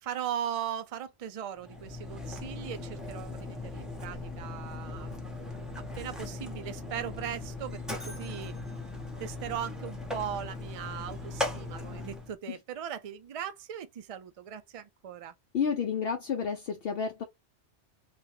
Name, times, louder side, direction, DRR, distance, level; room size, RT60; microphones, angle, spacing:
voice 1, 0.0-5.1 6.0-8.5 9.2-15.3, right 9 dB, 65° right, 0.3 m, -38 dB
Mechanisms, 1.6-12.3, left 2 dB, ahead, 0.6 m, -38 dB
voice 2, 15.5-17.2, left 6 dB, 65° left, 0.7 m, -30 dB
3.4 x 2.2 x 2.9 m
omnidirectional pair, 1.2 m